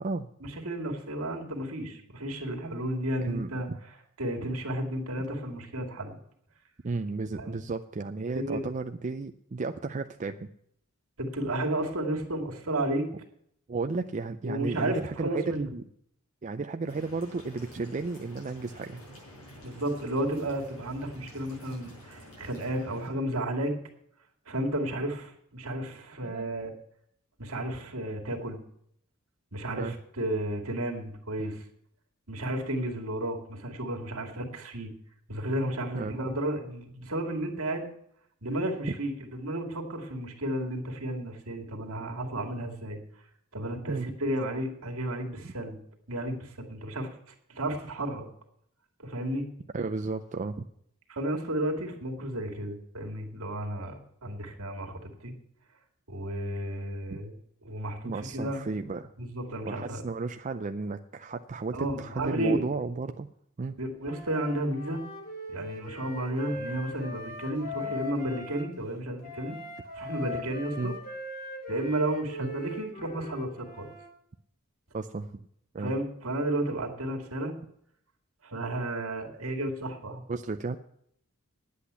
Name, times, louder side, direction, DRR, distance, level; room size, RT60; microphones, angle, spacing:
voice 1, 0.4-3.7 4.2-6.2 7.4-7.6 8.3-8.7 11.2-13.1 14.4-15.7 19.6-23.7 24.5-26.7 27.4-28.6 29.5-31.6 32.3-34.9 35.3-37.9 38.4-43.0 43.5-45.8 46.1-47.1 47.5-48.3 49.0-49.5 51.1-55.3 56.1-57.4 57.6-58.6 59.2-60.0 61.7-62.6 63.8-65.0 65.5-69.6 69.9-70.9 71.7-73.9 75.8-77.5 78.4-80.2, right 1 dB, 70° right, 2 dB, 2.3 m, -32 dB
voice 2, 3.2-3.8 6.8-10.5 13.7-15.8 16.4-19.0 26.2-26.5 29.7-29.9 35.9-36.2 43.9-44.1 49.7-50.6 57.1-57.2 58.0-59.1 59.6-63.3 63.6-63.7 70.8-71.0 72.4-72.5 74.9-75.4 75.7-75.9 80.3-80.8, right 3 dB, 35° right, 7 dB, 0.4 m, -33 dB
sound 1, 16.9-23.1, equal, 90° left, 7.0 m, -49 dB
Wind instrument woodwind instrument, 64.0-68.7 69.2-74.1, left 2 dB, 40° left, 2.3 m, -40 dB
10.0 x 8.5 x 8.1 m, 0.70 s
head